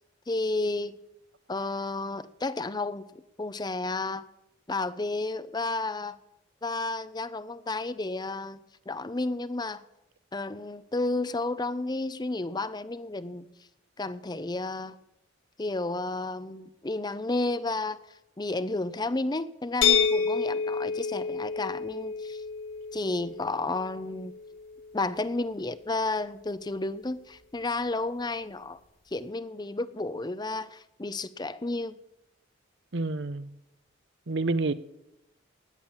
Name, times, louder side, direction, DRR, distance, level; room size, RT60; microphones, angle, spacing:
voice 1, 0.3-1.0 1.5-4.2 4.7-6.2 6.6-8.6 8.9-9.8 10.3-13.5 14.0-15.0 15.6-18.0 18.4-22.4 22.9-24.3 24.9-28.8 29.1-32.0, left 2 dB, 20° left, 0.6 m, -32 dB
sound 1, 19.8-25.6, left 6 dB, 80° left, 2.0 m, -30 dB
voice 2, 32.9-33.5 34.3-34.7, right 3 dB, 60° right, 0.8 m, -28 dB
19.0 x 10.5 x 7.3 m
head